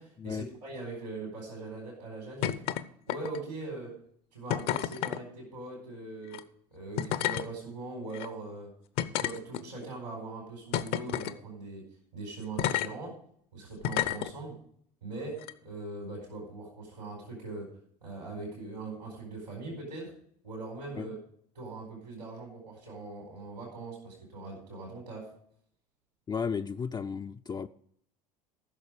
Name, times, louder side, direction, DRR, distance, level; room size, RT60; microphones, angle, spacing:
voice 1, 0.0-2.6 3.1-4.0 4.3-6.4 6.7-8.7 9.2-11.8 12.1-13.2 13.5-14.6 15.0-17.7 18.0-20.1 20.4-21.2 21.5-25.3, right 3 dB, 85° right, 4.0 m, -41 dB
sound 1, 2.4-2.8 3.1-3.5 4.5-5.2 6.2-6.4 7.0-7.5 8.1-8.3 9.0-9.9 10.7-11.4 12.6-12.9 13.8-14.3 15.4-15.5, left 12 dB, 55° left, 0.7 m, -30 dB
voice 2, 26.3-27.7, left 6 dB, 20° left, 0.4 m, -34 dB
14.5 x 6.4 x 5.0 m
figure-of-eight pair, 65°, 20 cm